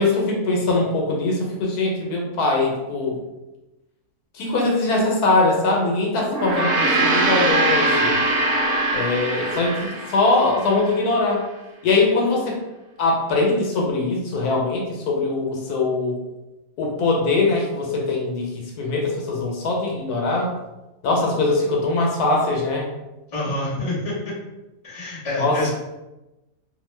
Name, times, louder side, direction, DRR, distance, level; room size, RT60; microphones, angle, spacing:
voice 1, 0.0-3.2 4.3-8.2 8.9-11.4 11.8-12.6 13.0-16.2 16.8-20.5 21.0-22.9 25.4-25.6, left 3 dB, 90° left, -1 dB, 1.2 m, -22 dB
Gong, 6.2-10.9, right 2 dB, 70° right, 0.9 m, -22 dB
voice 2, 23.3-24.3 24.8-25.7, left 1 dB, 30° left, -7 dB, 1.1 m, -27 dB
2.8 x 2.1 x 3.1 m, 1.0 s
omnidirectional pair, 1.6 m